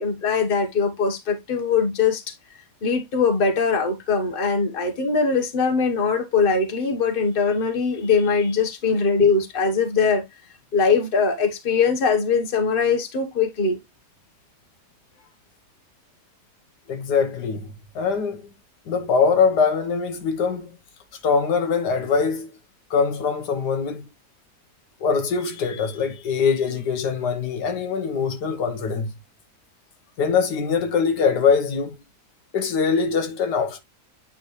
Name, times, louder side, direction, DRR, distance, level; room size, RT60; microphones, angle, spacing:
voice 1, 0.0-2.2 2.8-10.2 10.7-13.8, left 5 dB, 35° left, 1.3 m, -21 dB
voice 2, 16.9-17.7 17.9-18.4 18.9-20.7 21.2-22.5 22.9-24.0 25.0-29.1 30.2-31.9 32.5-33.8, left 5 dB, 85° left, 1.6 m, -22 dB
8.9 x 3.8 x 3.1 m
omnidirectional pair, 1.7 m